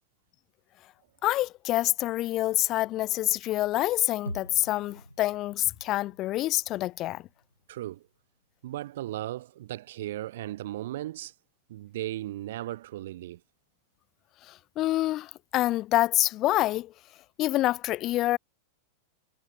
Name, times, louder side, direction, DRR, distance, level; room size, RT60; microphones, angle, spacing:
voice 1, 1.2-7.2 14.4-16.9 17.4-18.4, left 16 dB, 35° left, 0.3 m, -27 dB
sound 1, 4.3-8.2 8.5-8.6, equal, 90° left, 0.7 m, -45 dB
voice 2, 7.7-8.1 8.6-11.3 11.7-13.4, right 14 dB, 55° right, 0.8 m, -36 dB
figure-of-eight pair, 90°, 0 cm